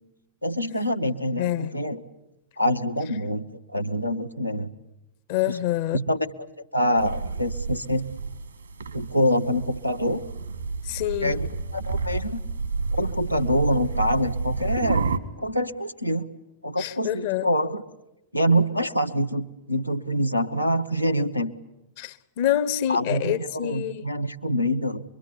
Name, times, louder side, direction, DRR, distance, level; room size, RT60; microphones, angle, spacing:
voice 1, 0.4-2.0 2.6-4.7 5.5-5.6 5.9-6.5 6.7-8.1 8.9-10.2 11.2-12.4 12.9-15.1 15.4-16.3 16.6-17.8 18.3-21.5 22.9-25.0, equal, 90° left, 1.1 m, -25 dB
voice 2, 1.4-1.7 5.3-6.0 10.8-11.4 16.8-17.5 22.0-24.1, left 12 dB, 50° left, 1.0 m, -26 dB
sound 1, 7.0-15.2, right 4 dB, 75° right, 1.9 m, -30 dB
25.5 x 23.0 x 9.8 m
figure-of-eight pair, 90°, 0 cm